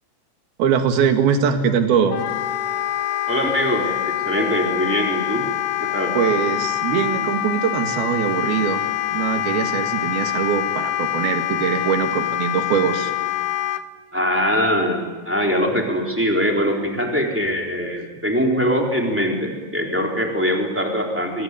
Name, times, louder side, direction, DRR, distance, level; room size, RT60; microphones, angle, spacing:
voice 1, 0.6-2.2 6.1-8.8 9.1-13.1, right 7 dB, 70° right, 6 dB, 3.7 m, -21 dB
Wind instrument woodwind instrument, 2.1-13.8, left 13 dB, 80° left, 1.7 m, -25 dB
voice 2, 3.3-5.5 5.8-6.1 14.1-21.4, equal, 5° right, 0 dB, 3.1 m, -22 dB
24.5 x 22.5 x 9.6 m, 1.3 s
omnidirectional pair, 4.7 m